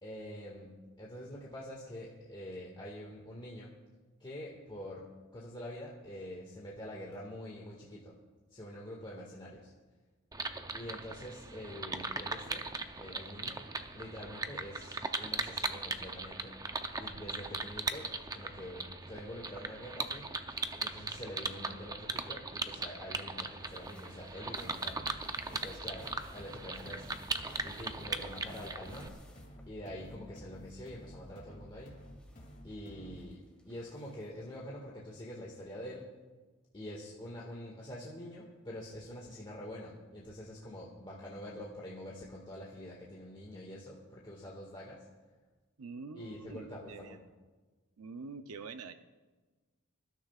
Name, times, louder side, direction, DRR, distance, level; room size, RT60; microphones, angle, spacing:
voice 1, 0.0-0.7 1.0-3.7 4.2-5.0 5.3-8.2 8.5-9.7 10.7-12.7 13.0-13.6 13.9-16.5 17.0-20.3 20.8-25.0 25.5-27.1 27.6-29.2 29.7-31.9 32.6-36.1 36.7-45.0 46.2-47.2, left 1 dB, 20° left, -4 dB, 1.8 m, -46 dB
sound 1, 10.3-29.1, right 3 dB, 15° right, 0.6 m, -39 dB
sound 2, 23.5-30.3 30.5-34.5 35.6-35.7 36.0-36.1, left 1 dB, 5° left, 2.2 m, -61 dB
sound 3, 24.8-33.3, equal, 40° left, 2.6 m, -52 dB
voice 2, 45.8-47.2 48.0-48.9, right 4 dB, 70° right, 9 dB, 0.6 m, -45 dB
26.0 x 13.0 x 2.4 m, 1.3 s
head